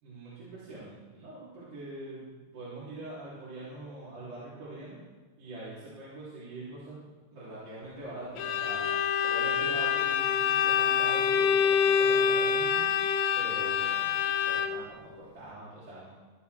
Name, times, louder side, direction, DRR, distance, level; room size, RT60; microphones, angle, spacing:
voice 1, 0.0-2.2 2.5-5.0 5.4-7.0 7.3-14.2 14.4-16.1, right 2 dB, 55° right, -11 dB, 4.3 m, -43 dB
Bowed string instrument, 8.4-14.9, left 7 dB, 80° left, 2.3 m, -26 dB
15.5 x 10.5 x 3.4 m, 1.3 s
omnidirectional pair, 4.3 m